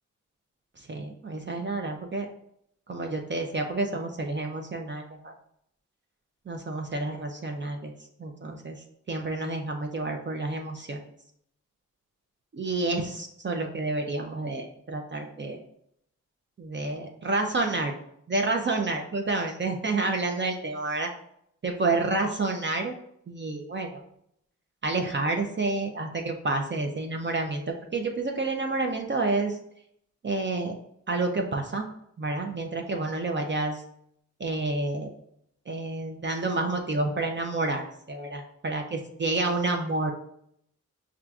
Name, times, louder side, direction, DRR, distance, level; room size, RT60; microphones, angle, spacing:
voice 1, 0.8-2.3 2.9-5.3 6.5-7.9 8.2-11.0 12.5-15.6 16.6-17.9 18.3-21.1 21.6-22.9 23.3-23.9 24.8-29.6 30.2-30.8 31.1-31.9 32.2-33.8 34.4-35.1 35.7-40.1, right 3 dB, 35° right, 3 dB, 0.5 m, -29 dB
5.5 x 2.5 x 2.3 m, 0.73 s
cardioid pair, 50°, 31 cm